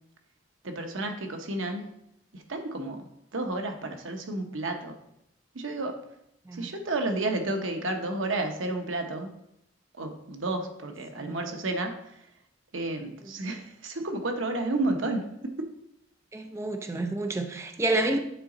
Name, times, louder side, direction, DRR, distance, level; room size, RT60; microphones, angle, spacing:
voice 1, 0.6-1.9 2.3-3.1 3.3-5.0 5.5-5.9 6.5-9.3 10.0-11.9 12.7-15.5, right 2 dB, 85° right, 5 dB, 0.9 m, -31 dB
voice 2, 16.3-18.2, right 2 dB, 15° right, 5 dB, 0.4 m, -29 dB
9.0 x 4.0 x 3.8 m, 0.79 s
head